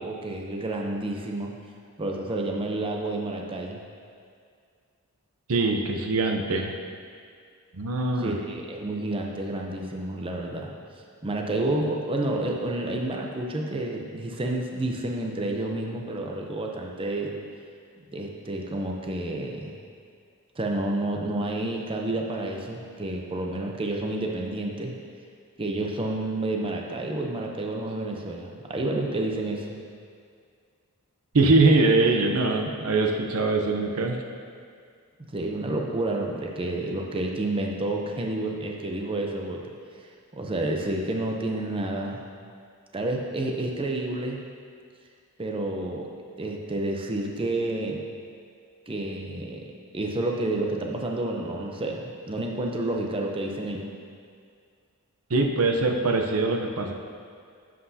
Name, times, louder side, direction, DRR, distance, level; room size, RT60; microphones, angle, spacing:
voice 1, 0.0-1.5 2.0-3.8 8.2-10.7 11.2-17.3 18.1-19.8 20.6-24.9 25.6-29.8 35.3-39.6 39.9-42.3 42.9-44.4 45.4-46.1 46.4-48.0 48.9-49.6 49.9-53.9, right 2 dB, 25° right, 1 dB, 0.6 m, -30 dB
voice 2, 5.5-6.7 7.7-8.4 31.3-34.2 55.3-56.9, right 3 dB, 70° right, 3 dB, 0.7 m, -22 dB
11.0 x 7.6 x 2.8 m, 2.2 s
head